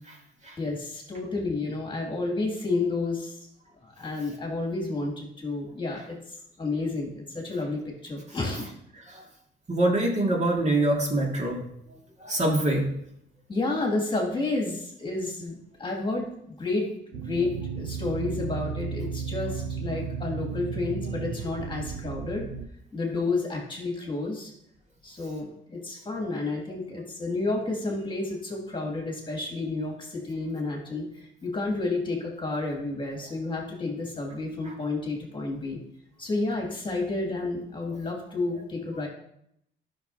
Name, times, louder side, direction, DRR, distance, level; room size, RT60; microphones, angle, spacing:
voice 1, 0.6-3.3 3.8-8.6 13.5-16.3 16.6-22.5 22.9-24.5 25.0-35.8 36.2-39.1, left 3 dB, 25° left, 0 dB, 2.1 m, -31 dB
voice 2, 9.7-11.6 12.2-12.9 34.7-34.8, right 1 dB, 35° right, -1 dB, 2.0 m, -25 dB
sound 1, 17.1-22.7, right 6 dB, 75° right, 0.6 m, -34 dB
11.0 x 6.1 x 2.7 m, 0.74 s
cardioid pair, 90°, 20 cm